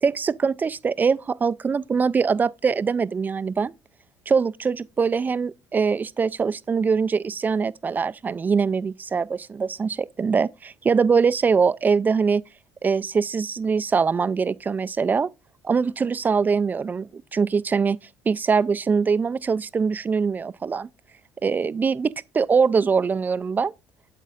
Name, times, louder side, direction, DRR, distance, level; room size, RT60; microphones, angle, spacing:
voice 1, 0.0-3.7 4.3-12.4 12.8-15.3 15.7-18.0 18.3-20.9 21.4-23.7, right 5 dB, 25° right, 0.3 m, -23 dB
8.1 x 7.3 x 2.4 m
supercardioid pair, 80°, 7 cm